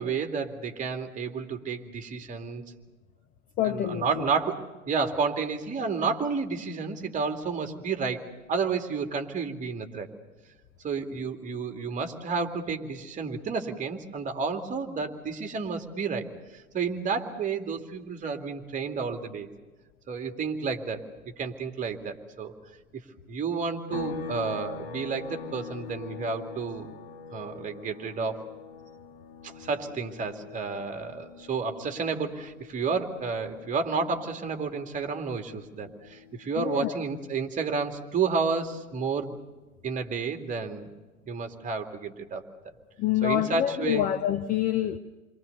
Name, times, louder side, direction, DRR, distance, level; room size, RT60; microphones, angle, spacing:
voice 1, 0.0-2.6 3.6-8.2 8.5-10.1 10.8-19.5 20.1-21.0 21.4-22.5 23.3-26.9 27.3-28.5 29.4-39.3 39.8-40.9 41.3-42.4 43.2-44.1, right 5 dB, 15° right, 5 dB, 2.6 m, -31 dB
voice 2, 3.6-4.1 36.6-36.9 43.0-45.0, left 12 dB, 20° left, 9 dB, 0.7 m, -26 dB
sound 1, 23.9-37.5 37.8-40.0, left 6 dB, 50° left, 2.5 m, -44 dB
29.0 x 23.5 x 6.9 m, 1.2 s
figure-of-eight pair, 100°, 42 cm